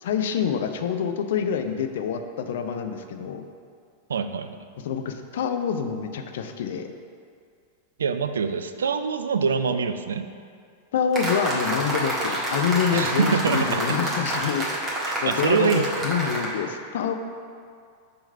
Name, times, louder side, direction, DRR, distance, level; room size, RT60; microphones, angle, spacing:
voice 1, 0.0-3.4 4.8-6.9 10.9-14.8 15.2-17.1, left 7 dB, 60° left, 7 dB, 0.5 m, -26 dB
voice 2, 4.1-4.6 8.0-10.3 12.9-13.9 15.0-15.9, right 5 dB, 70° right, 9 dB, 0.3 m, -25 dB
sound 1, 11.1-16.5, right 1 dB, 20° right, 1.6 m, -28 dB
6.6 x 3.9 x 5.4 m, 2.2 s
figure-of-eight pair, 90°, 0 cm